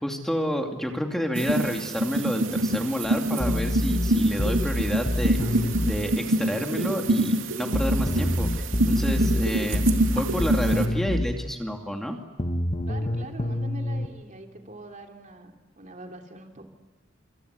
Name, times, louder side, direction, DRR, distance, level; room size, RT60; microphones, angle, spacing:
voice 1, 0.0-9.9 10.1-12.2, equal, ahead, 2 dB, 2.5 m, -29 dB
sound 1, 1.4-10.9, right 1 dB, 85° right, 2.8 m, -26 dB
sound 2, 3.4-6.0 7.7-11.3 12.4-14.1, left 1 dB, 35° left, 1.5 m, -26 dB
voice 2, 12.8-16.7, right 2 dB, 40° right, 3 dB, 3.2 m, -43 dB
27.5 x 26.0 x 8.3 m, 1.2 s
head